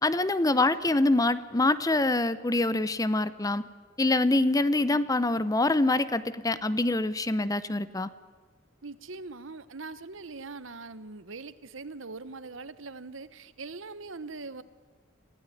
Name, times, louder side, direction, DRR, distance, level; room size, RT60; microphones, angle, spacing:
voice 1, 0.0-3.6 4.0-8.1, left 2 dB, 20° left, 15 dB, 0.7 m, -25 dB
voice 2, 8.8-14.6, right 3 dB, 75° right, 15 dB, 1.1 m, -42 dB
26.5 x 15.5 x 10.0 m, 1.5 s
head